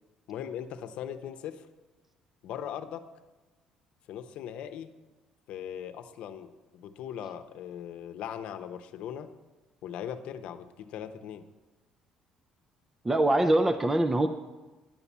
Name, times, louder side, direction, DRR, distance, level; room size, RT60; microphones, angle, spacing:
voice 1, 0.3-1.7 2.4-3.0 4.1-4.9 5.5-9.3 9.8-11.5, left 9 dB, 65° left, 9 dB, 0.8 m, -39 dB
voice 2, 13.0-14.3, right 1 dB, 15° right, 7 dB, 0.5 m, -23 dB
10.5 x 6.9 x 7.2 m, 1.2 s
cardioid pair, 140°, 2 cm